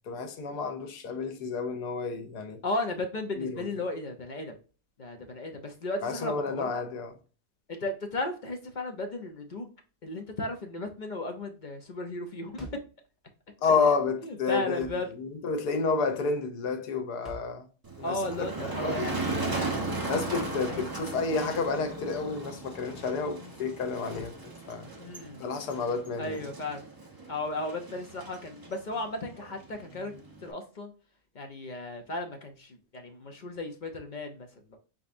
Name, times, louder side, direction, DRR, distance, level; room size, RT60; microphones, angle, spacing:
voice 1, 0.1-2.6 3.4-3.6 6.0-7.1 13.6-14.9 15.2-17.7 18.0-18.2 18.6-19.0 20.0-24.3 24.7-24.9 25.4-26.4, left 4 dB, 90° left, 1.4 m, -30 dB
voice 2, 2.6-4.5 5.0-6.7 7.7-9.7 10.0-12.7 13.7-13.8 14.2-15.1 18.0-19.8 20.7-20.8 25.0-25.4 26.2-26.8 27.3-30.1 30.4-30.9 31.3-34.8, left 2 dB, 45° left, 0.6 m, -35 dB
sound 1, 12.6-13.0 14.8-15.1 17.2-17.6 19.9-20.2 22.1-22.3 24.1-24.4, right 2 dB, ahead, 0.9 m, -47 dB
Motor vehicle (road), 17.8-30.5, right 3 dB, 20° right, 0.6 m, -37 dB
4.6 x 3.9 x 2.5 m
omnidirectional pair, 1.6 m